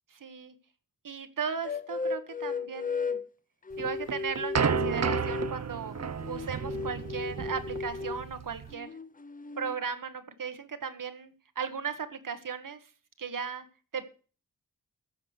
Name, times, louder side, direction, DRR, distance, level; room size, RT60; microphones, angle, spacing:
voice 1, 0.1-0.5 1.0-3.2 3.8-6.0 6.3-8.9 9.6-12.8 13.2-13.7 13.9-14.1, right 6 dB, 75° right, 10 dB, 1.4 m, -36 dB
sound 1, 1.6-3.3 3.7-5.6 5.9-8.3 8.7-9.8, left 4 dB, 25° left, 0.6 m, -35 dB
sound 2, 3.8-8.7, right 6 dB, 50° right, 0.6 m, -32 dB
14.5 x 6.1 x 6.6 m, 0.39 s
wide cardioid pair, 90°, 33 cm